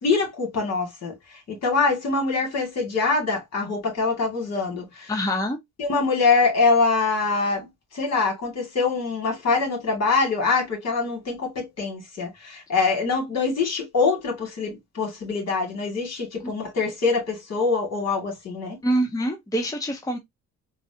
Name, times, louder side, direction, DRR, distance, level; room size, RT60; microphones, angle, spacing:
voice 1, 0.0-1.1 1.5-5.1 5.8-7.7 7.9-18.8, left 4 dB, 60° left, 2.2 m, -24 dB
voice 2, 5.1-5.6 16.4-16.5 18.8-20.2, equal, 10° left, 0.8 m, -25 dB
4.0 x 2.3 x 2.7 m
cardioid pair, 90°, 30 cm